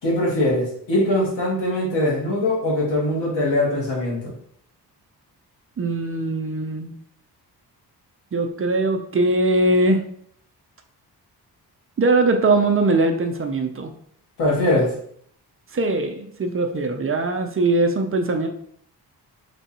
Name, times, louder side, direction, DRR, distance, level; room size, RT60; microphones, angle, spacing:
voice 1, 0.0-4.3 14.4-14.9, left 1 dB, 85° left, -3 dB, 1.9 m, -21 dB
voice 2, 5.8-6.9 8.3-10.0 12.0-13.9 15.7-18.5, right 2 dB, 35° right, 5 dB, 0.5 m, -21 dB
3.7 x 3.4 x 4.2 m, 0.65 s
wide cardioid pair, 130°, 41 cm